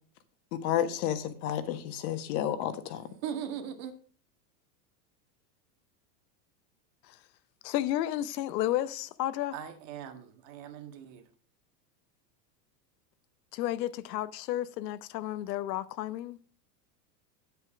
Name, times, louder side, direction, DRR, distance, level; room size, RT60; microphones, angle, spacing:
voice 1, 0.5-3.0, left 10 dB, 60° left, 1.5 m, -31 dB
voice 2, 3.2-3.9 9.5-11.3, right 8 dB, 55° right, 1.8 m, -39 dB
voice 3, 7.6-9.6 13.5-16.4, left 13 dB, 80° left, 0.9 m, -32 dB
8.9 x 8.1 x 5.1 m
supercardioid pair, 150°, 49 cm